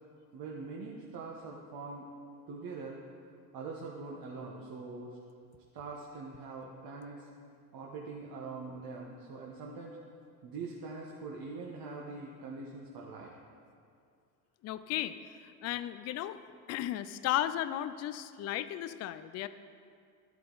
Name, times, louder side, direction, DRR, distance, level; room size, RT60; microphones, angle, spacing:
voice 1, 0.3-2.1 2.5-3.0 3.5-5.2 5.7-7.3 7.7-10.0 10.4-13.3, right 4 dB, 45° right, -3 dB, 1.4 m, -43 dB
voice 2, 14.6-15.2 15.4-16.4 16.7-19.5, left 13 dB, 35° left, 13 dB, 0.4 m, -35 dB
12.5 x 7.9 x 4.0 m, 2.3 s
hypercardioid pair, 90°, 50 cm